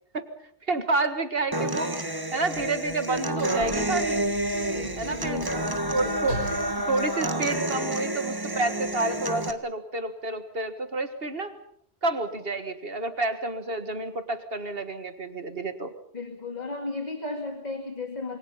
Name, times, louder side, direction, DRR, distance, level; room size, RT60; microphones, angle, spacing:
voice 1, 0.7-1.9 2.3-4.2 5.0-6.4 6.9-11.6 12.0-15.9, right 2 dB, 55° right, 9 dB, 2.0 m, -29 dB
Human voice / Acoustic guitar, 1.5-9.5, right 1 dB, 20° right, 1.7 m, -29 dB
sound 1, 2.5-6.1, right 3 dB, 35° right, 1.7 m, -48 dB
Sliding door / Slam, 2.9-8.2 9.1-9.3, right 2 dB, 80° right, 4.4 m, -41 dB
voice 2, 4.7-5.5 5.9-6.4 16.1-18.4, left 3 dB, 35° left, 4 dB, 2.4 m, -35 dB
27.0 x 24.5 x 5.6 m, 0.68 s
omnidirectional pair, 1.2 m